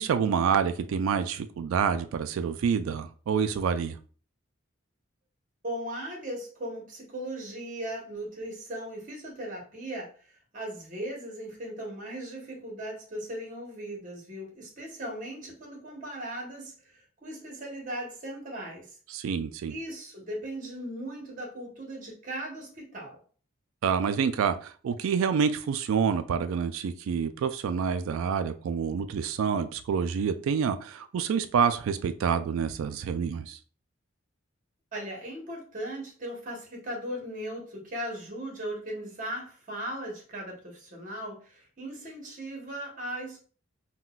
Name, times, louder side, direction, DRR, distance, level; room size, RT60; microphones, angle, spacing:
voice 1, 0.0-4.0 19.1-19.8 23.8-33.6, right 6 dB, 80° right, 0.3 m, -27 dB
voice 2, 5.6-19.0 19.7-23.2 34.9-43.4, right 1 dB, 40° right, 1.0 m, -38 dB
3.8 x 2.2 x 2.3 m
head